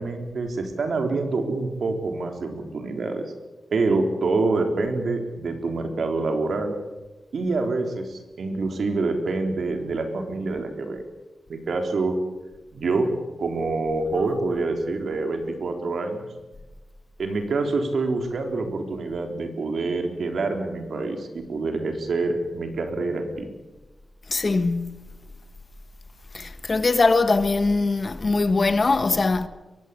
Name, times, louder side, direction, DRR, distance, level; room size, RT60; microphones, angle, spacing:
voice 1, 0.0-3.2 3.7-6.8 7.3-11.0 11.5-12.2 12.7-13.1 13.4-16.3 17.2-23.5, right 3 dB, 70° right, 3.8 m, -26 dB
voice 2, 24.3-25.0 26.3-29.5, left 3 dB, 35° left, 1.4 m, -21 dB
22.5 x 17.0 x 8.5 m
wide cardioid pair, 150°, 0 cm